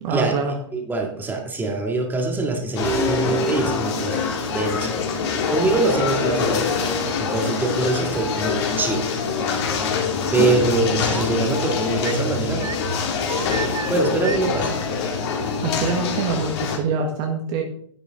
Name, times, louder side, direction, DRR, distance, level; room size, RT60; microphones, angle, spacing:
voice 1, 0.0-0.6 15.6-17.6, right 4 dB, 40° right, 2 dB, 1.5 m, -25 dB
voice 2, 0.7-4.2 4.5-4.9 5.5-6.7 7.2-9.1 10.3-12.7 13.9-14.7, right 3 dB, 10° right, 1 dB, 2.0 m, -24 dB
sound 1, 2.8-16.8, left 5 dB, 55° left, 2.4 m, -25 dB
sound 2, 2.8-4.8, right 1 dB, 15° left, 1.6 m, -27 dB
sound 3, 10.8-11.4 12.0-14.7, right 5 dB, 90° right, 0.8 m, -32 dB
10.5 x 7.9 x 3.7 m, 0.64 s
hypercardioid pair, 115°, 16 cm